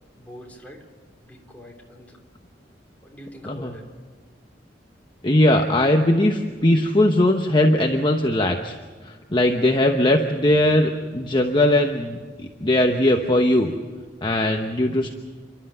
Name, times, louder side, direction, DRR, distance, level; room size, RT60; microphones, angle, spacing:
voice 1, 0.1-0.9 1.2-2.2 3.0-3.9, equal, 10° left, 0 dB, 3.3 m, -43 dB
voice 2, 5.2-8.7 9.0-13.7 14.2-15.1, left 1 dB, 25° left, 4 dB, 1.0 m, -19 dB
29.5 x 12.0 x 9.0 m, 1.5 s
head